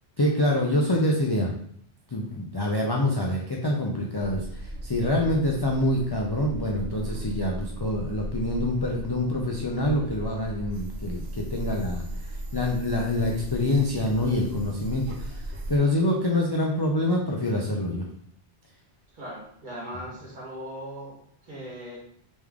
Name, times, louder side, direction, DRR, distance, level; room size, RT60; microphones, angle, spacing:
voice 1, 0.2-1.5 2.1-12.0 12.3-15.4 15.7-18.0, left 1 dB, 40° left, -2 dB, 0.3 m, -26 dB
sound 1, 4.2-15.8, right 1 dB, 75° right, 1.0 m, -37 dB
voice 2, 19.1-22.0, equal, 45° right, -5 dB, 1.5 m, -39 dB
3.4 x 3.1 x 3.5 m, 0.67 s
omnidirectional pair, 1.1 m